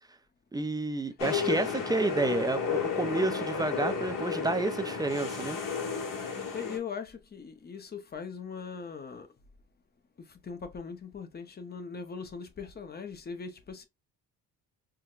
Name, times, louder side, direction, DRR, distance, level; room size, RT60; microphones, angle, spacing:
voice 1, 0.5-5.6, right 3 dB, 10° right, 0.4 m, -30 dB
sound 1, 1.2-6.8, left 6 dB, 60° left, 1.3 m, -32 dB
voice 2, 6.5-9.3 10.2-13.9, left 6 dB, 25° left, 0.7 m, -40 dB
4.6 x 2.1 x 2.3 m
cardioid pair, 120°, 36 cm